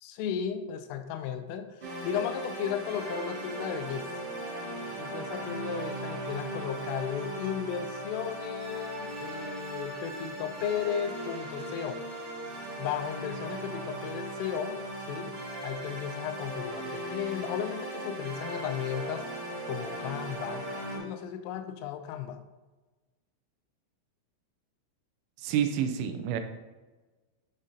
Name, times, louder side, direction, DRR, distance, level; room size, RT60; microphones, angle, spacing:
voice 1, 0.0-4.1 5.0-12.0 12.8-14.8 15.1-15.3 15.6-19.3 19.6-20.6 21.0-22.4, left 8 dB, 85° left, 8 dB, 3.1 m, -35 dB
sound 1, 1.8-21.0, right 1 dB, 60° right, 1.4 m, -38 dB
voice 2, 25.4-26.4, right 9 dB, 85° right, 7 dB, 3.3 m, -28 dB
11.5 x 5.2 x 2.8 m, 1.2 s
omnidirectional pair, 5.8 m